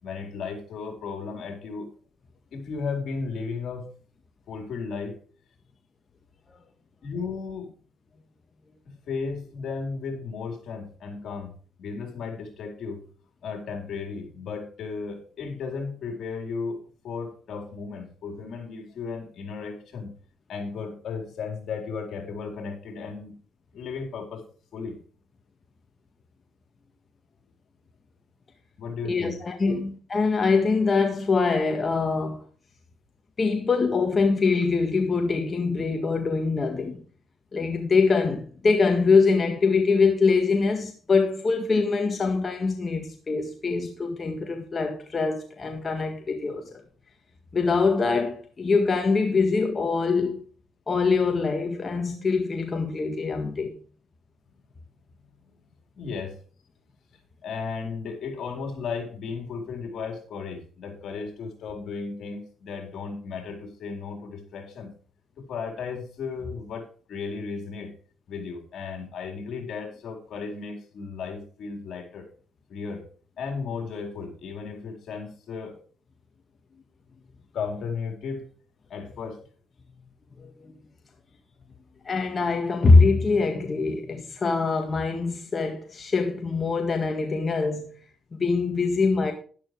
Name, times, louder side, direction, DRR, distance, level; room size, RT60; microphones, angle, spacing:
voice 1, 0.0-1.9 2.5-3.9 4.5-5.2 7.0-7.7 8.8-13.0 13.4-16.8 17.0-20.1 20.5-23.4 23.7-24.5 24.7-25.0 28.8-29.4 29.7-29.8 51.1-51.2 56.0-56.4 57.4-64.9 65.4-67.9 68.3-72.3 72.7-73.1 73.4-75.8 77.5-78.5 78.9-79.4, left 5 dB, 65° left, 4.3 m, -35 dB
voice 2, 29.0-32.4 33.4-37.0 37.5-46.8 47.5-50.4 50.9-53.8 80.4-80.5 82.0-87.9 88.3-89.3, left 4 dB, 35° left, 1.6 m, -23 dB
12.0 x 11.5 x 3.2 m
cardioid pair, 90°, 0 cm